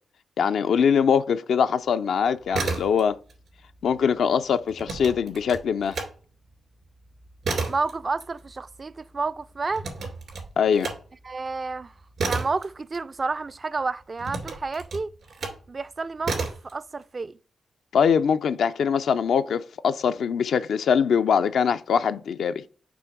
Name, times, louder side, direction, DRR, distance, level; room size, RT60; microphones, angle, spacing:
voice 1, 0.4-3.2 3.8-6.0 10.6-10.9 17.9-22.6, left 7 dB, 80° left, 0.4 m, -22 dB
sound 1, 2.4-3.4 3.6-6.1 6.5-13.6 14.2-15.7 16.2-16.7, right 4 dB, 75° right, 2.6 m, -32 dB
voice 2, 7.7-9.8 11.2-11.9 12.2-15.1 15.7-17.4, right 3 dB, 45° right, 0.4 m, -30 dB
6.1 x 3.1 x 5.8 m
cardioid pair, 55°, 0 cm